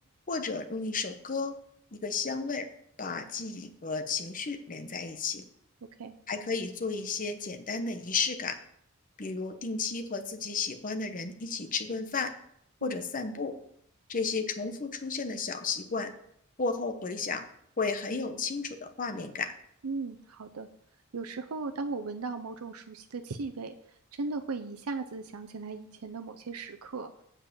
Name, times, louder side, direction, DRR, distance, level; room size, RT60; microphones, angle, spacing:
voice 1, 0.3-1.5 1.9-2.7 3.0-5.4 6.3-8.6 9.2-12.3 12.8-13.5 14.1-16.1 16.6-17.4 17.8-19.5, left 4 dB, 40° left, 7 dB, 0.9 m, -33 dB
voice 2, 19.8-20.7 21.1-23.8 24.1-27.1, right 4 dB, 80° right, 7 dB, 0.6 m, -37 dB
7.4 x 5.5 x 7.4 m, 0.71 s
head